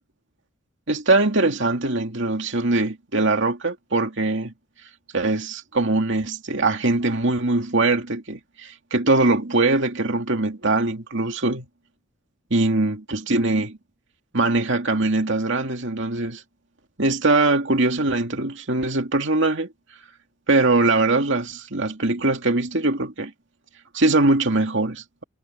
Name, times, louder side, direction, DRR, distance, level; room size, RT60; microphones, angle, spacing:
voice 1, 0.9-4.5 5.1-11.7 12.5-13.8 14.3-16.4 17.0-19.7 20.5-23.3 23.9-25.2, right 2 dB, 60° right, 2.6 m, -22 dB
head